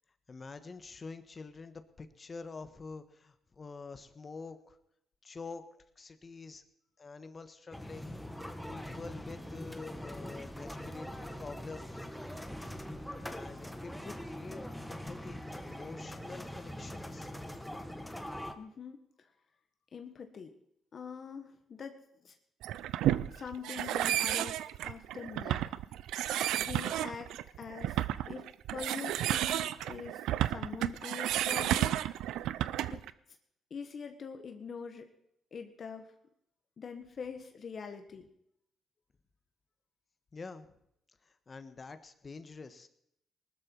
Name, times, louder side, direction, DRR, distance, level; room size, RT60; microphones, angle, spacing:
voice 1, 0.3-4.8 5.2-5.6 6.0-6.6 7.0-8.1 8.7-12.0 13.2-17.3 40.3-40.7 41.2-42.9, left 4 dB, 35° left, 10 dB, 1.5 m, -47 dB
sound 1, 7.7-18.5, equal, 5° left, 1.5 m, -42 dB
voice 2, 18.6-19.3 19.9-20.5 20.9-22.3 23.3-25.7 26.6-27.3 27.6-32.0 32.9-33.0 33.7-35.1 35.5-36.1 36.8-38.2, left 6 dB, 50° left, 7 dB, 1.5 m, -44 dB
sound 2, 22.6-33.1, right 12 dB, 85° right, 0.5 m, -32 dB
19.5 x 13.0 x 4.7 m, 0.74 s
cardioid pair, 90°, 0 cm